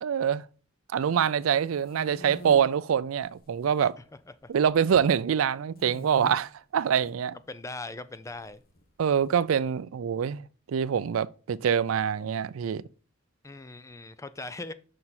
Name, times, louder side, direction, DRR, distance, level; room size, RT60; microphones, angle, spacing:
voice 1, 0.0-0.4 0.9-4.0 4.5-7.4 9.0-12.8, right 8 dB, 85° right, 0.4 m, -25 dB
sound 1, 1.2-2.6 3.3-3.9 4.1-5.1 5.7-6.3 6.9-7.1 8.3-9.2, equal, 50° left, 1.2 m, -45 dB
voice 2, 7.5-8.6 13.4-14.7, left 2 dB, 15° left, 0.4 m, -40 dB
6.5 x 5.5 x 4.2 m
head